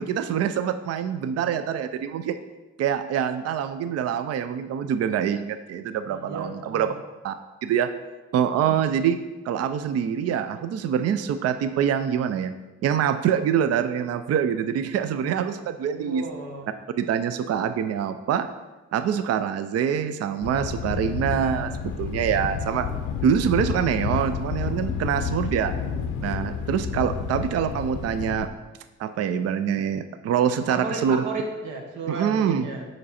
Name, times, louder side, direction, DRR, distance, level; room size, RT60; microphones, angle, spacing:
voice 1, 0.0-2.4 2.8-6.9 7.2-7.3 7.6-7.9 8.3-9.2 9.5-12.5 12.8-16.2 17.0-18.5 18.9-22.9 23.2-25.7 26.2-28.5 29.0-31.2 32.1-32.7, right 8 dB, 55° right, 10 dB, 0.4 m, -25 dB
voice 2, 6.1-6.9 8.6-8.8 16.0-16.7 22.7-23.1 30.7-32.9, right 3 dB, 80° right, 1 dB, 1.2 m, -34 dB
Thunder, 20.4-28.5, left 7 dB, 85° left, 0.6 m, -30 dB
5.9 x 5.1 x 4.1 m, 1.2 s
cardioid pair, 90°, 30 cm